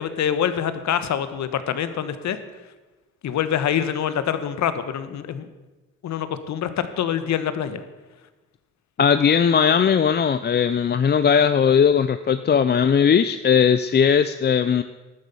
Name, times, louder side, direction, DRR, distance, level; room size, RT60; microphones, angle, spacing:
voice 1, 0.0-2.4 3.2-5.5 6.0-7.8, left 9 dB, 65° left, 12 dB, 1.2 m, -25 dB
voice 2, 9.0-14.8, left 7 dB, 35° left, 11 dB, 0.5 m, -18 dB
12.5 x 9.5 x 7.0 m, 1.2 s
cardioid pair, 90°, 30 cm